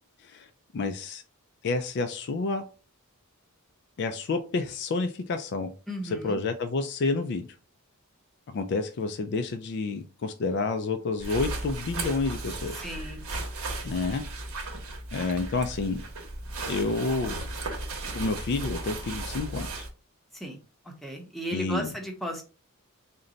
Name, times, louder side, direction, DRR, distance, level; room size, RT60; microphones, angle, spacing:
voice 1, 0.7-1.2 1.6-2.6 4.0-5.7 6.2-7.6 8.5-12.8 13.8-14.2 15.1-16.0 16.7-17.4 18.1-19.8 21.5-21.9, left 3 dB, 50° left, 0.3 m, -29 dB
voice 2, 5.9-6.4 12.8-13.3 20.3-20.6 20.8-22.4, equal, ahead, 0.7 m, -35 dB
sound 1, 11.2-19.9, right 2 dB, 70° right, 0.9 m, -35 dB
3.9 x 2.2 x 3.8 m
head